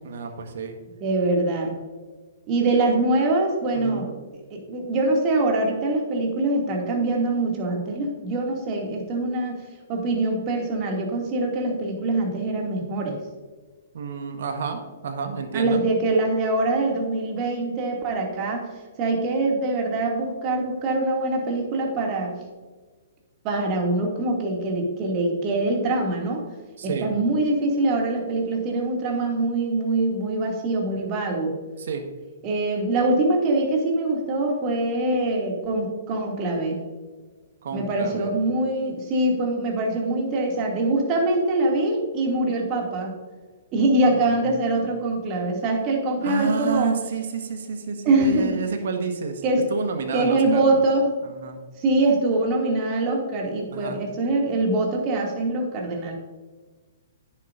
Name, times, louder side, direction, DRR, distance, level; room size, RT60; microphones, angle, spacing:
voice 1, 0.0-0.7 3.7-4.1 13.9-15.8 26.8-27.1 31.8-32.0 37.6-38.3 44.1-44.3 46.2-49.4 49.7-50.8 51.2-51.6 53.7-54.0, right 5 dB, 60° right, 5 dB, 1.4 m, -30 dB
voice 2, 1.0-1.8 2.5-4.1 4.5-9.6 9.9-13.2 15.5-18.7 19.0-22.3 23.4-26.4 26.8-31.5 32.4-36.8 37.7-43.1 43.7-47.0 48.0-48.6 49.4-49.7 50.1-51.1 51.8-56.1, right 2 dB, 35° right, 0 dB, 2.4 m, -23 dB
11.0 x 9.3 x 2.6 m, 1.4 s
figure-of-eight pair, 115°, 0 cm